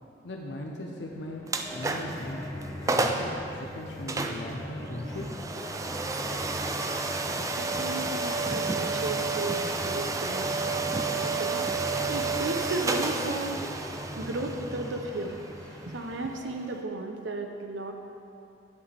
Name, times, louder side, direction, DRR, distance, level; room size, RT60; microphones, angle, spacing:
voice 1, 0.2-2.5 2.9-5.2, left 1 dB, 70° left, -1 dB, 0.7 m, -38 dB
sound 1, 1.0-16.7, equal, 25° left, 1.5 m, -40 dB
sound 2, 1.5-2.2 2.6-2.7 2.9-3.3 4.1-16.8, right 3 dB, 20° right, 0.3 m, -31 dB
voice 2, 7.3-10.7 11.1-11.7 12.1-13.7 14.2-15.4 15.9-17.9, right 2 dB, 85° right, 4 dB, 0.7 m, -35 dB
10.5 x 7.3 x 3.4 m, 2.6 s
head